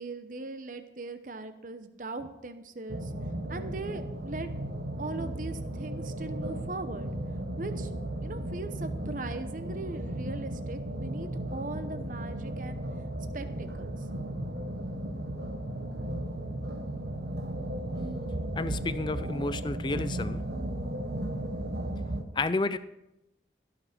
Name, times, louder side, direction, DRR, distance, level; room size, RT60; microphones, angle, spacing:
voice 1, 0.0-3.1 3.5-4.5 5.0-7.1 7.6-7.9 8.2-12.8 13.3-13.9, right 3 dB, 45° right, 9 dB, 0.8 m, -39 dB
sound 1, 2.9-22.2, right 1 dB, 65° right, 1.2 m, -35 dB
voice 2, 18.6-20.4 22.4-22.8, left 3 dB, 25° left, 14 dB, 0.4 m, -31 dB
16.5 x 6.0 x 6.6 m, 0.92 s
head